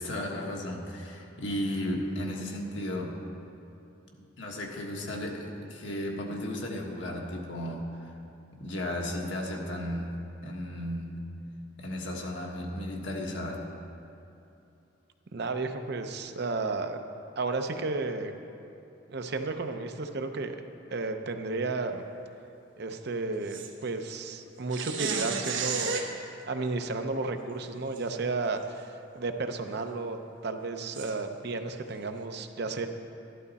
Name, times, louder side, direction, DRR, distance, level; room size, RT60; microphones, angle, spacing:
voice 1, 0.0-3.2 4.1-8.2 8.5-11.2 11.8-13.7, left 1 dB, 75° left, 0 dB, 1.5 m, -34 dB
voice 2, 15.3-17.0 17.4-18.3 19.1-20.6 20.9-22.0 22.8-26.1 26.5-28.9 29.1-30.2 30.4-32.9, right 3 dB, 60° right, 6 dB, 0.7 m, -32 dB
sound 1, 23.5-23.7 24.7-26.1 28.0-28.1 28.6-28.7 30.9-31.1, right 5 dB, 80° right, 1.1 m, -32 dB
12.5 x 11.5 x 4.2 m, 2.8 s
head